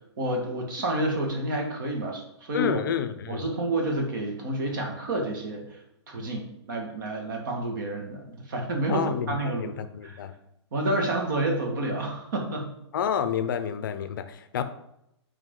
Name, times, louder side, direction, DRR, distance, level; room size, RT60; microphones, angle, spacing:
voice 1, 0.2-2.8 3.3-5.6 6.1-9.8 10.0-10.2 10.7-12.7, right 1 dB, 45° right, 2 dB, 1.9 m, -29 dB
voice 2, 2.5-3.4 8.9-10.3 12.9-14.6, left 8 dB, 45° left, 10 dB, 0.7 m, -29 dB
8.0 x 5.3 x 3.8 m, 0.81 s
hypercardioid pair, 170°, 15 cm